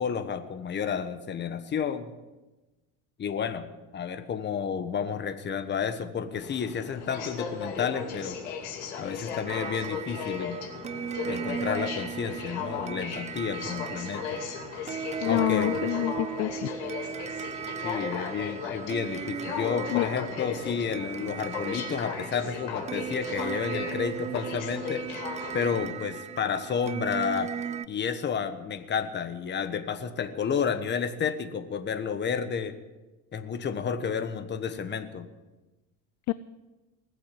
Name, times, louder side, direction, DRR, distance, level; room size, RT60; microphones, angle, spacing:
voice 1, 0.0-2.1 3.2-8.4 9.0-10.6 11.3-14.4 15.3-15.8 17.8-25.0 25.5-27.5 27.9-32.7 33.3-35.3, left 7 dB, 30° left, 10 dB, 1.3 m, -31 dB
Aircraft, 6.3-25.7, left 6 dB, 90° left, 2.7 m, -37 dB
sound 1, 9.5-27.9, right 8 dB, 20° right, 0.4 m, -37 dB
voice 2, 15.2-16.9 19.9-20.1 36.3-36.4, left 16 dB, 55° left, 16 dB, 0.5 m, -27 dB
20.0 x 7.8 x 7.7 m, 1.1 s
cardioid pair, 120°, 34 cm